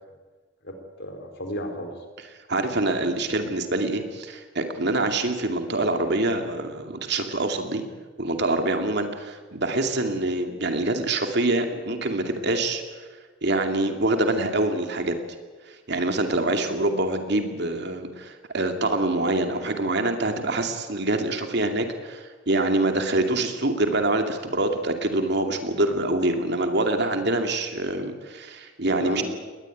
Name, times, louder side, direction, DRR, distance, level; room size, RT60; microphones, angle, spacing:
voice 1, 0.6-1.9 29.0-29.2, equal, 55° left, 5 dB, 4.2 m, -33 dB
voice 2, 2.5-7.8 8.2-12.8 13.4-15.2 15.7-29.2, right 2 dB, 55° right, 5 dB, 2.6 m, -25 dB
21.0 x 19.5 x 9.3 m, 1.4 s
head